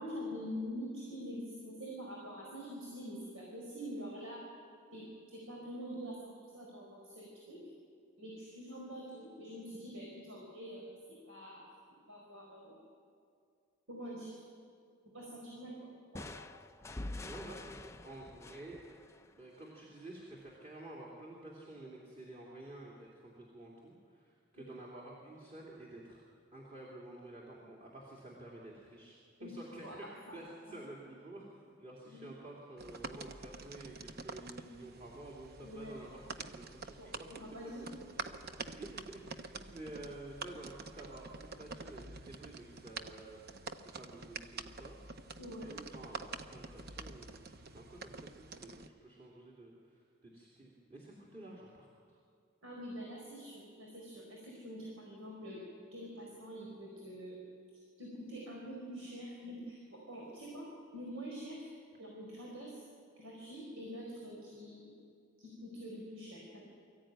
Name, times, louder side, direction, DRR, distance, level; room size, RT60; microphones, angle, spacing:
voice 1, 0.0-4.4 4.9-7.6 8.2-11.6 12.1-12.8 13.9-14.4 15.1-16.5 24.5-24.6 29.4-29.5 29.8-30.0 30.3-30.4 32.1-32.3 35.6-36.0 37.0-38.3 45.4-45.8 52.6-55.6 55.9-57.4 58.0-60.7 60.9-61.7 62.0-62.8 63.2-64.9 65.4-66.6, equal, 80° right, -3 dB, 4.5 m, -45 dB
sound 1, 16.1-19.8, left 2 dB, 15° left, 0.5 m, -46 dB
voice 2, 17.2-18.8 19.3-26.2 26.5-37.3 38.6-43.4 43.9-45.0 45.6-52.2, right 1 dB, 30° right, -4 dB, 3.0 m, -50 dB
sound 2, 32.8-48.9, right 4 dB, 50° right, 0.8 m, -47 dB
24.0 x 14.5 x 9.2 m, 2.3 s
head